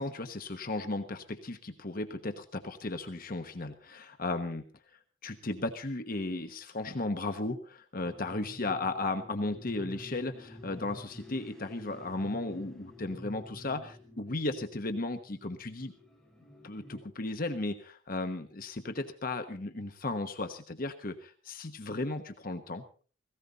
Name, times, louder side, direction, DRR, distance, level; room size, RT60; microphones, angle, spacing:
voice 1, 0.0-4.7 5.2-15.9 16.6-22.8, left 2 dB, 50° left, 7 dB, 1.2 m, -35 dB
sound 1, 8.0-17.0, left 1 dB, 5° left, 5.0 m, -50 dB
18.0 x 16.5 x 4.1 m, 0.40 s
head